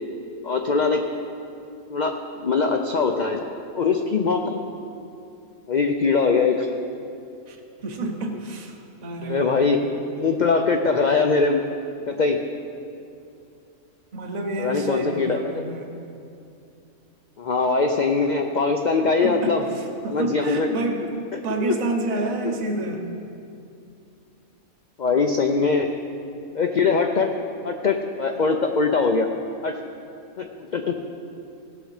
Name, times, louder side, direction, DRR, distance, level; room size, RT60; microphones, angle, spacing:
voice 1, 0.4-1.1 1.9-3.5 3.8-4.6 5.7-6.7 9.2-9.8 10.1-11.6 12.1-12.4 14.6-15.6 17.4-19.7 20.1-20.7 21.3-21.8 22.1-22.5 25.0-25.9 26.5-27.3 27.6-29.3 29.6-29.8 30.4-30.9, left 4 dB, 70° left, 4 dB, 0.4 m, -22 dB
voice 2, 7.5-9.7 14.1-15.9 19.2-21.1 21.4-23.1, right 2 dB, 35° right, 3 dB, 0.9 m, -29 dB
16.0 x 6.4 x 4.9 m, 2.6 s
omnidirectional pair, 1.5 m